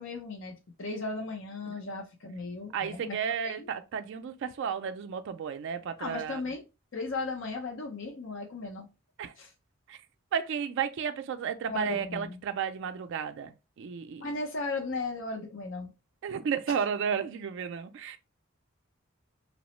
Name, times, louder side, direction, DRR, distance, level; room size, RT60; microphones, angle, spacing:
voice 1, 0.0-3.1 3.4-3.7 6.0-6.6 6.9-8.9 9.4-9.5 11.7-12.4 14.2-15.9, left 3 dB, 65° left, 0.6 m, -36 dB
voice 2, 2.7-6.4 9.2-9.3 9.9-10.0 10.3-14.3 16.2-18.2, right 7 dB, 60° right, 0.3 m, -33 dB
2.9 x 2.0 x 3.0 m
head